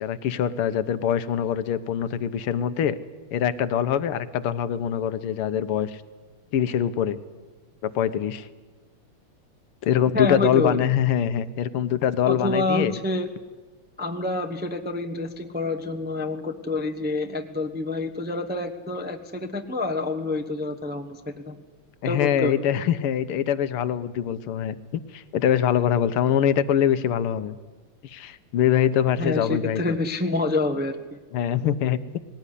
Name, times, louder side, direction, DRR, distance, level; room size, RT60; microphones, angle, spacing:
voice 1, 0.0-3.0 3.3-6.0 6.5-7.2 7.8-8.5 9.8-13.0 22.0-27.6 28.0-29.8 31.3-32.2, left 9 dB, 85° left, 13 dB, 1.8 m, -24 dB
voice 2, 10.1-10.9 12.2-13.3 14.0-21.6 22.0-22.6 29.2-31.0, left 2 dB, 10° right, 5 dB, 0.5 m, -27 dB
20.0 x 17.5 x 10.0 m, 1.3 s
omnidirectional pair, 2.4 m